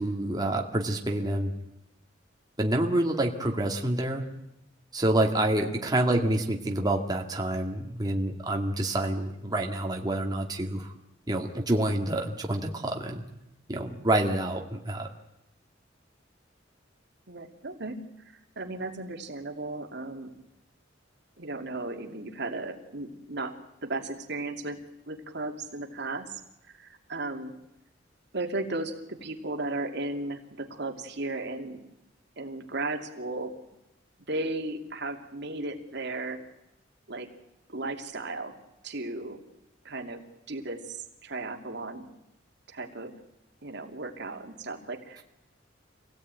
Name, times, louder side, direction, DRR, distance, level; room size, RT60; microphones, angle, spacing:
voice 1, 0.0-1.5 2.6-4.2 4.9-10.9 11.3-13.2 13.7-15.1, right 1 dB, 20° right, 1 dB, 2.1 m, -27 dB
voice 2, 17.3-18.0 18.6-20.3 21.4-24.8 25.1-26.4 26.7-27.5 28.3-31.8 32.4-33.6 34.3-36.4 37.1-37.3 37.7-38.6 38.8-39.4 39.8-41.0 41.2-42.1 42.7-43.1 43.6-45.2, right 2 dB, 65° right, 4 dB, 2.7 m, -35 dB
26.5 x 17.5 x 9.2 m, 0.88 s
head